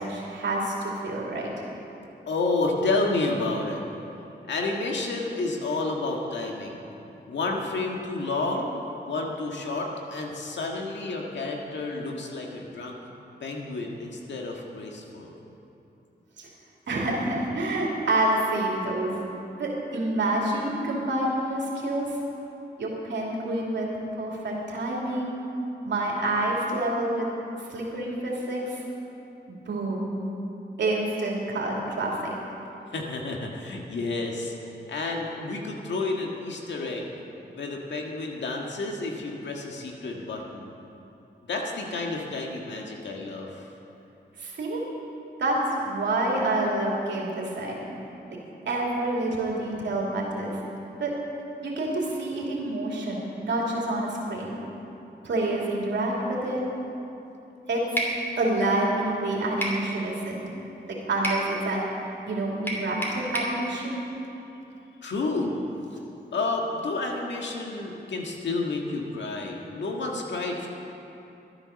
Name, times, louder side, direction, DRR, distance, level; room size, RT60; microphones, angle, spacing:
voice 1, 0.0-1.5 16.4-16.5 16.9-19.3 19.6-22.1 22.8-25.3 25.8-27.2 27.7-28.8 29.7-30.2 30.8-32.4 44.4-44.8 45.4-47.8 48.6-50.6 51.0-51.1 51.6-54.6 55.2-56.6 57.7-57.8 58.4-60.4 60.9-61.8 62.3-64.0, right 2 dB, 85° right, -3 dB, 2.7 m, -28 dB
voice 2, 2.3-3.8 4.5-6.9 7.3-13.0 13.4-15.3 32.9-34.5 34.9-37.1 37.5-40.7 41.4-43.7 65.0-65.5 66.3-70.7, left 3 dB, 85° left, 0 dB, 1.7 m, -30 dB
sound 1, 58.0-58.2 59.6-59.8 61.2-61.5 62.7-63.6, right 1 dB, 10° left, 2.9 m, -29 dB
12.5 x 10.0 x 6.5 m, 2.9 s
cardioid pair, 60°, 18 cm